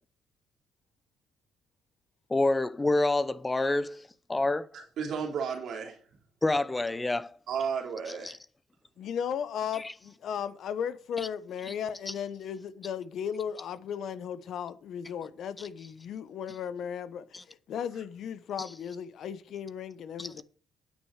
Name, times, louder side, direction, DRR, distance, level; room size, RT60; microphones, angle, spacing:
voice 1, 2.3-4.7 6.4-7.4 8.2-8.4 9.7-9.9 11.2-11.3 11.7-11.8 12.1-12.2 17.3-17.4 20.2-20.3, left 2 dB, 20° left, 0.7 m, -28 dB
voice 2, 4.7-6.0 7.5-8.4, right 6 dB, 70° right, 3.0 m, -33 dB
voice 3, 9.0-20.4, left 8 dB, 70° left, 1.0 m, -36 dB
9.2 x 6.4 x 6.6 m
cardioid pair, 90°, 0 cm